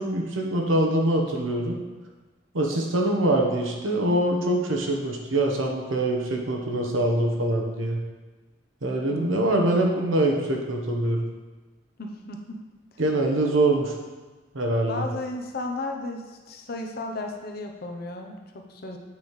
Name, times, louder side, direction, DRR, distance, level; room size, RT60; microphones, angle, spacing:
voice 1, 0.0-1.8 2.5-8.0 8.8-11.3 13.0-13.9 14.5-15.1, right 1 dB, 85° right, 1 dB, 1.1 m, -24 dB
voice 2, 9.1-9.6 12.0-12.6 13.5-13.6 14.9-19.0, left 2 dB, 50° left, 3 dB, 0.7 m, -34 dB
8.3 x 5.2 x 3.2 m, 1.3 s
head